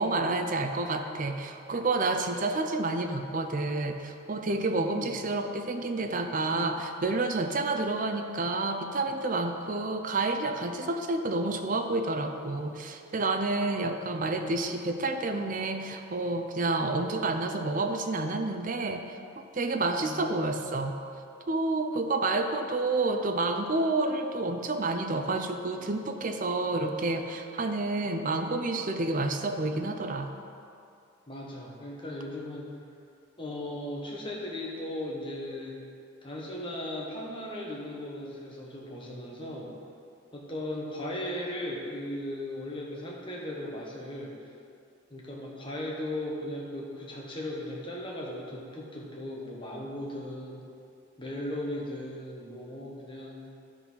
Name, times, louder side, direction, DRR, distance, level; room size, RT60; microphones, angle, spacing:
voice 1, 0.0-19.2 19.5-21.0 21.5-30.3, right 2 dB, 40° right, 5 dB, 0.5 m, -29 dB
voice 2, 4.7-5.1 20.0-20.5 31.3-32.7 33.4-35.8 36.2-39.7 40.3-44.3 45.1-50.6 51.2-53.5, left 1 dB, 25° left, -3 dB, 1.3 m, -37 dB
12.5 x 4.2 x 5.5 m, 2.5 s
head